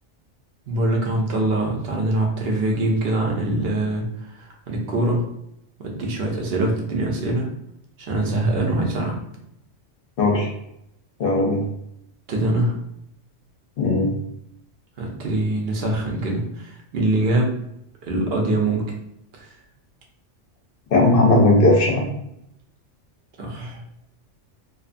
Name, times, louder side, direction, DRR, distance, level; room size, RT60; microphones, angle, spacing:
voice 1, 0.7-5.3 5.8-7.5 8.0-9.2 12.3-12.8 15.0-17.5 18.0-18.8 19.3-19.5 23.4-23.8, right 2 dB, 60° right, 0 dB, 0.8 m, -23 dB
voice 2, 10.2-10.5 11.2-11.6 13.8-14.1 20.9-22.1, left 2 dB, 55° left, -1 dB, 0.7 m, -17 dB
2.6 x 2.3 x 2.4 m, 0.77 s
omnidirectional pair, 1.3 m